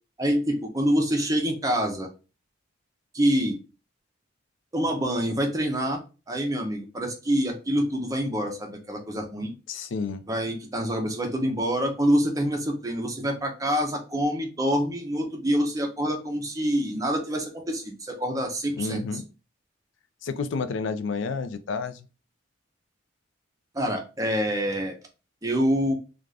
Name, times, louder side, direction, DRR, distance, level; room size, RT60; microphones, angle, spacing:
voice 1, 0.2-2.1 3.1-3.6 4.7-6.0 6.3-9.5 10.3-19.0 23.7-24.9 25.4-25.9, equal, 15° right, 0.5 m, -26 dB
voice 2, 9.7-10.2 18.7-19.2 20.2-22.1, left 4 dB, 70° left, 0.4 m, -30 dB
2.4 x 2.3 x 3.2 m
head